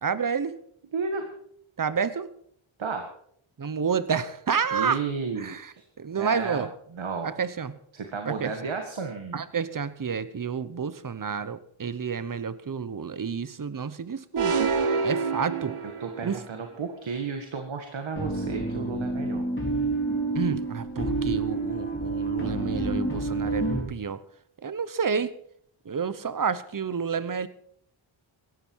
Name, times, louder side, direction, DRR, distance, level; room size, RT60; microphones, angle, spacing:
voice 1, 0.0-0.6 1.8-2.3 3.6-5.0 5.4-6.7 7.2-7.7 8.3-8.5 9.3-14.7 15.0-15.8 16.2-16.4 20.3-24.2 24.6-25.3 25.8-27.5, right 6 dB, 40° right, 15 dB, 1.0 m, -30 dB
voice 2, 0.9-1.3 2.8-3.1 4.7-5.6 6.1-7.3 7.9-9.4 15.8-19.5, right 5 dB, 65° right, 5 dB, 1.9 m, -33 dB
sound 1, 14.4-16.4, right 5 dB, 85° right, 1.6 m, -27 dB
sound 2, 18.2-23.8, right 2 dB, 25° left, 4.8 m, -28 dB
17.5 x 14.0 x 4.7 m, 0.66 s
wide cardioid pair, 100°, 50 cm